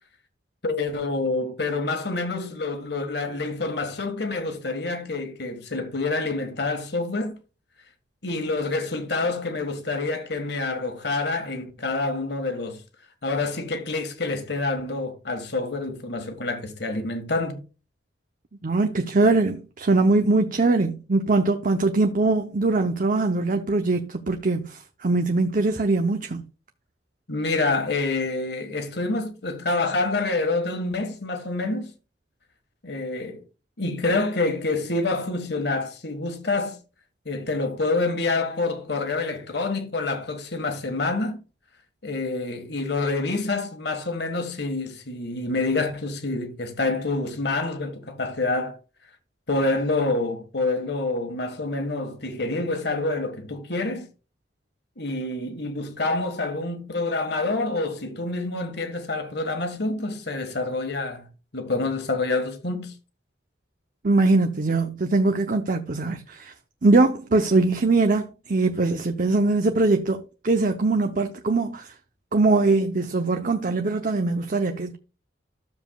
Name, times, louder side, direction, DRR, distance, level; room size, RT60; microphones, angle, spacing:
voice 1, 0.6-7.4 8.2-12.8 13.2-17.6 27.3-31.9 32.8-33.4 33.8-36.8 37.2-41.4 42.0-48.8 49.5-54.1 55.0-61.3 61.5-62.9, left 3 dB, 65° left, 1.6 m, -27 dB
voice 2, 18.6-26.4 64.0-66.5 66.8-71.9 72.3-75.0, right 3 dB, 50° right, 0.7 m, -22 dB
13.5 x 7.2 x 2.3 m
head